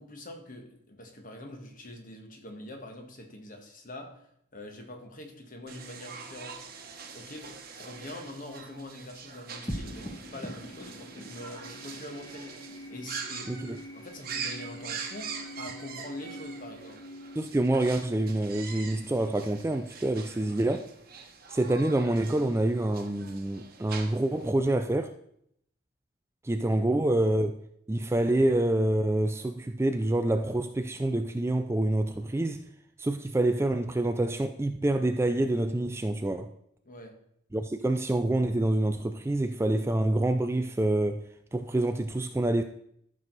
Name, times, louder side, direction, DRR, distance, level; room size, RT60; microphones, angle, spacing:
voice 1, 0.0-4.2 4.5-6.6 7.1-7.5 7.8-12.6 12.9-13.5 13.9-17.0 26.8-26.9 36.8-37.1, left 1 dB, 40° left, 1.5 m, -44 dB
sound 1, 5.7-24.5, right 6 dB, 45° right, 1.1 m, -43 dB
sound 2, 9.7-20.3, equal, 15° left, 1.1 m, -44 dB
voice 2, 13.5-13.8 17.4-20.9 21.5-25.1 26.4-27.5 27.9-32.7 33.0-36.5 37.5-41.3 41.5-42.6, right 1 dB, 15° right, 0.3 m, -27 dB
13.5 x 6.3 x 4.0 m
head